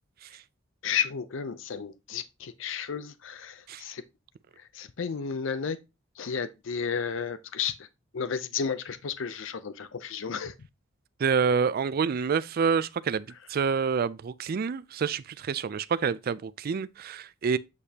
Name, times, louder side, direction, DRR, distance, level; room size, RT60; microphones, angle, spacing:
voice 1, 0.8-4.0 4.6-5.8 6.2-7.9 8.1-10.5, left 6 dB, 65° left, 0.5 m, -33 dB
voice 2, 11.2-17.6, right 6 dB, 50° right, 0.4 m, -27 dB
8.2 x 5.1 x 2.8 m
head